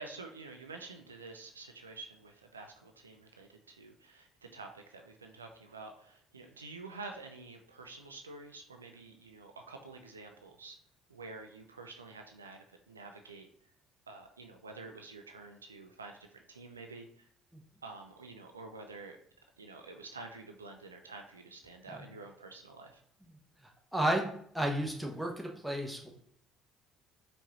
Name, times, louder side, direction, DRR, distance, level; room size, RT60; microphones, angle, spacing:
voice 1, 0.0-10.8 11.1-13.5 14.1-17.3 17.8-19.2 19.6-23.0, right 3 dB, 85° right, 4 dB, 0.3 m, -49 dB
voice 2, 23.9-24.2 24.5-26.1, right 1 dB, ahead, 0 dB, 1.0 m, -32 dB
4.5 x 2.6 x 2.9 m, 0.65 s
figure-of-eight pair, 55°, 0 cm